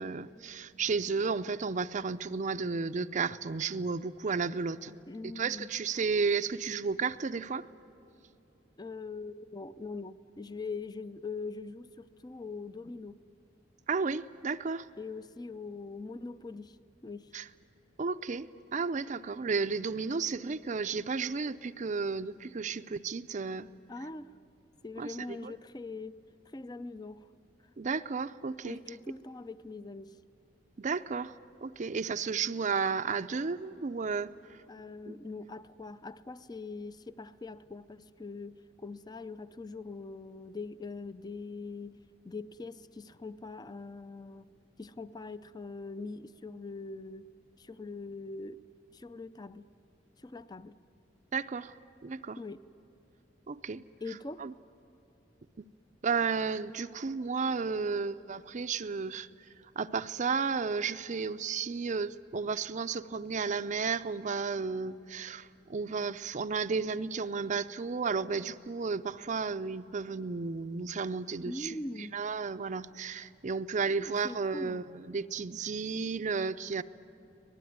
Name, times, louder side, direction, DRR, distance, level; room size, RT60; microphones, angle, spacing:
voice 1, 0.0-5.0 5.2-7.7 13.9-14.9 17.3-17.5 18.0-23.7 25.0-25.5 27.8-29.0 30.8-31.3 31.6-34.3 35.1-35.2 51.3-51.7 52.0-52.4 53.5-53.8 54.4-54.5 56.0-59.3 59.8-76.8, right 5 dB, 40° right, 11 dB, 0.5 m, -33 dB
voice 2, 5.1-5.7 8.8-13.2 15.0-16.8 17.0-17.3 23.9-24.3 24.8-26.2 26.5-27.2 28.4-30.2 34.7-42.0 42.2-44.5 44.8-47.3 47.6-48.6 48.9-49.7 50.2-50.8 52.4-52.6 54.0-54.5 71.5-72.2 74.0-74.8, left 3 dB, 20° left, 14 dB, 0.5 m, -42 dB
25.0 x 19.0 x 9.4 m, 2.8 s
head